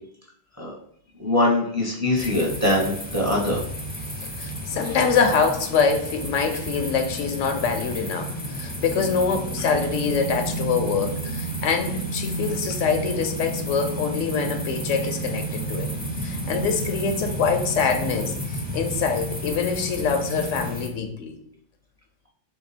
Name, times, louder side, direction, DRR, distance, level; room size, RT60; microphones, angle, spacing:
voice 1, 1.2-3.6, left 1 dB, 15° right, -3 dB, 0.9 m, -22 dB
sound 1, 2.2-20.9, right 1 dB, 10° left, 0.6 m, -31 dB
voice 2, 4.4-15.9 16.2-21.4, left 5 dB, 85° left, 6 dB, 1.0 m, -25 dB
3.5 x 2.9 x 4.1 m, 0.68 s
omnidirectional pair, 1.3 m